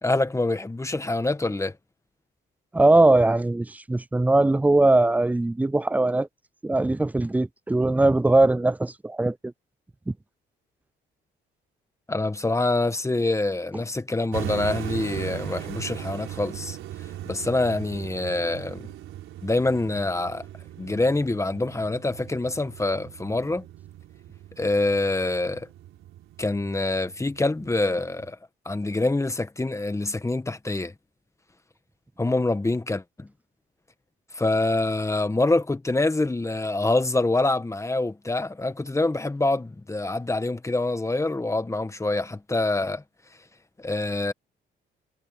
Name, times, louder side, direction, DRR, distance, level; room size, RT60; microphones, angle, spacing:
voice 1, 0.0-1.7 12.1-16.8 17.3-18.9 19.4-20.5 20.8-23.6 24.6-25.7 26.4-28.4 28.6-30.9 32.2-33.3 34.3-43.0 43.8-44.3, left 2 dB, 15° left, 1.6 m, -25 dB
voice 2, 2.7-6.3 6.6-9.5 10.1-10.2, right 2 dB, 10° right, 0.4 m, -20 dB
sound 1, 14.3-28.3, right 13 dB, 85° right, 4.5 m, -39 dB
cardioid pair, 90°, 20 cm